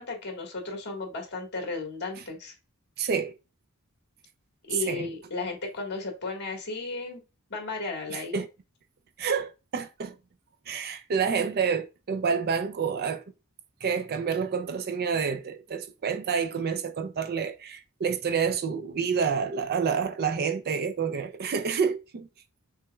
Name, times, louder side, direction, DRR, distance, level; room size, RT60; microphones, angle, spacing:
voice 1, 0.0-2.5 4.7-7.2 7.5-8.4, left 3 dB, 50° left, 1.7 m, -34 dB
voice 2, 3.0-3.3 4.9-5.1 8.1-8.5 9.2-10.2 10.7-13.2 13.8-22.3, right 6 dB, 45° right, 0.4 m, -28 dB
5.9 x 3.4 x 2.3 m
head